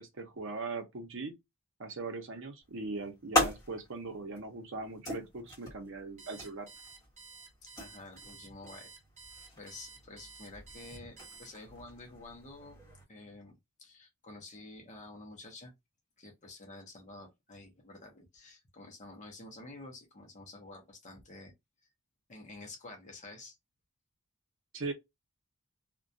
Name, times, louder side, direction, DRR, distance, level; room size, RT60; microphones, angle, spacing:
voice 1, 0.0-1.3 1.8-6.7 24.7-24.9, right 3 dB, 60° right, 0.6 m, -40 dB
sound 1, 2.6-13.0, left 1 dB, 15° left, 1.2 m, -39 dB
Alarm, 6.2-11.8, right 4 dB, 30° right, 1.0 m, -52 dB
voice 2, 7.6-8.9 9.5-12.8 13.1-15.7 16.2-21.5 22.3-23.6, left 2 dB, 35° left, 0.6 m, -50 dB
2.3 x 2.2 x 2.6 m
head